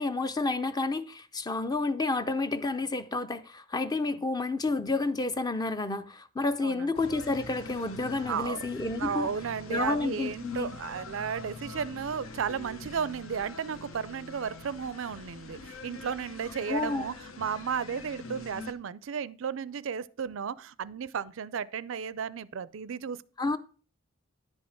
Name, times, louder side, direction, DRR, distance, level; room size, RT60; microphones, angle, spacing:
voice 1, 0.0-9.3 9.7-10.8 16.7-17.1 23.4-23.6, left 3 dB, 20° left, 0.5 m, -30 dB
sound 1, 6.9-18.7, left 3 dB, 75° left, 1.1 m, -44 dB
voice 2, 8.3-8.6 9.0-23.2, right 7 dB, 60° right, 0.4 m, -34 dB
10.5 x 5.3 x 5.8 m
head